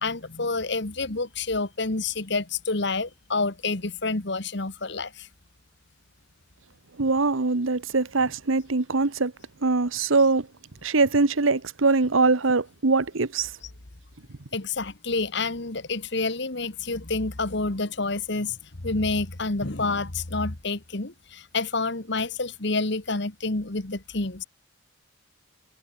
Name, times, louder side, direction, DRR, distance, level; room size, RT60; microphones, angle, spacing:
voice 1, 0.0-5.3 14.5-18.6 18.8-24.4, left 3 dB, 55° left, 1.7 m, -28 dB
voice 2, 7.0-9.3 9.6-10.5 10.8-13.5, right 3 dB, 75° right, 1.1 m, -22 dB
head